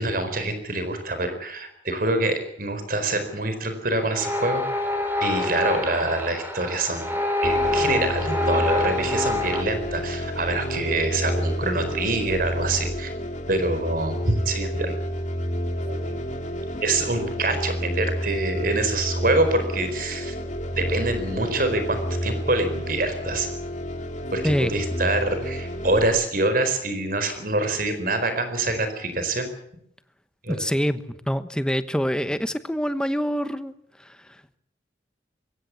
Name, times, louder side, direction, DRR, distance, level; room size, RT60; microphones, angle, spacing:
voice 1, 0.0-4.6 5.2-13.1 13.5-15.0 15.9-16.2 16.8-20.3 20.7-23.5 24.3-29.5 30.4-30.6, right 2 dB, 50° right, 8 dB, 4.5 m, -25 dB
sound 1, 4.0-9.6, left 2 dB, 10° right, 4.2 m, -26 dB
sound 2, 7.4-26.1, equal, 40° left, 2.6 m, -30 dB
voice 2, 30.5-33.7, equal, 5° left, 11 dB, 1.1 m, -25 dB
22.5 x 16.5 x 8.4 m, 0.73 s
head